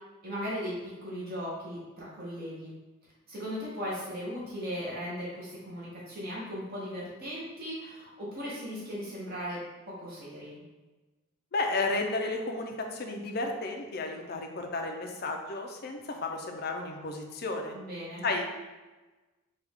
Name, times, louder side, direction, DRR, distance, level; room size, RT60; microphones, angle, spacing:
voice 1, 0.2-2.7 3.3-9.6 9.9-10.6 17.7-18.3, equal, 45° right, -6 dB, 1.0 m, -37 dB
voice 2, 11.5-17.7 18.2-18.4, left 3 dB, 45° left, 3 dB, 0.5 m, -33 dB
4.7 x 2.4 x 3.5 m, 1.2 s
head